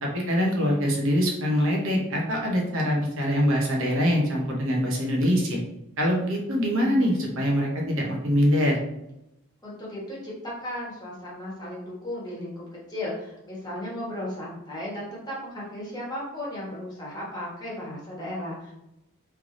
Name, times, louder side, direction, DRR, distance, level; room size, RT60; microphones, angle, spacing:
voice 1, 0.0-5.6 6.0-8.8, equal, 65° right, -1 dB, 1.0 m, -24 dB
voice 2, 9.6-18.7, left 1 dB, 20° left, -5 dB, 1.3 m, -35 dB
3.4 x 3.3 x 3.8 m, 0.87 s
head